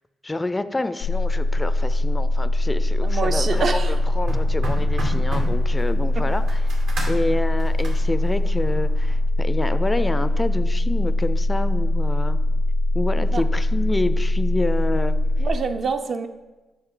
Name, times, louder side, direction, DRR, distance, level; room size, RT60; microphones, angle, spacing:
voice 1, 0.2-6.6 7.1-12.4 12.9-15.5, left 2 dB, 20° left, 12 dB, 0.4 m, -28 dB
sound 1, 1.0-15.5, left 1 dB, 75° left, 0.5 m, -21 dB
voice 2, 3.0-3.9 13.3-13.4 15.4-16.3, right 5 dB, 55° right, 7 dB, 0.5 m, -26 dB
sound 2, 3.2-9.2, right 1 dB, 80° right, 1.6 m, -35 dB
7.9 x 5.3 x 3.7 m, 1.2 s
supercardioid pair, 65°, 0 cm